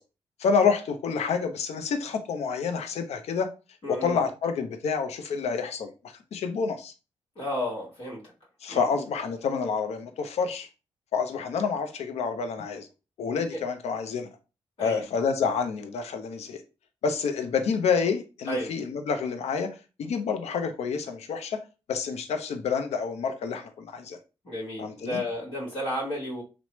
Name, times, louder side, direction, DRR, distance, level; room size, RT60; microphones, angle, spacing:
voice 1, 0.4-3.5 3.9-6.9 8.6-10.7 11.1-12.9 13.2-14.3 14.8-16.6 17.0-19.7 20.0-21.6 21.9-24.2 24.8-25.2, left 5 dB, 70° left, 0.5 m, -28 dB
voice 2, 3.8-4.2 7.4-8.2 8.7-8.9 14.8-15.0 18.5-18.7 24.4-26.4, left 1 dB, 55° left, 1.2 m, -32 dB
3.0 x 2.0 x 2.9 m
supercardioid pair, 45°, 11 cm